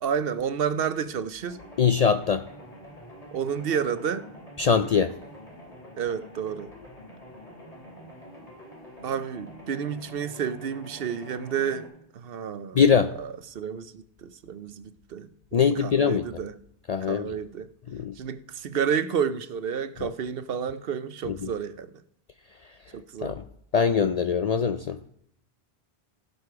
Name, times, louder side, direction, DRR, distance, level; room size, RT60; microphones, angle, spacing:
voice 1, 0.0-1.6 3.3-4.3 6.0-6.7 9.0-11.9 12.1-16.5 17.0-17.7 18.2-21.9 22.9-23.4, right 7 dB, 65° right, 13 dB, 0.9 m, -30 dB
sound 1, 1.5-11.9, equal, 35° left, 3.4 m, -46 dB
voice 2, 1.8-2.4 4.6-5.1 12.7-13.1 15.5-16.2 16.9-17.3 17.9-18.1 20.0-20.1 21.3-21.5 23.2-23.4 23.7-25.0, left 6 dB, 55° left, 10 dB, 0.4 m, -22 dB
16.5 x 6.5 x 4.8 m, 0.73 s
omnidirectional pair, 1.1 m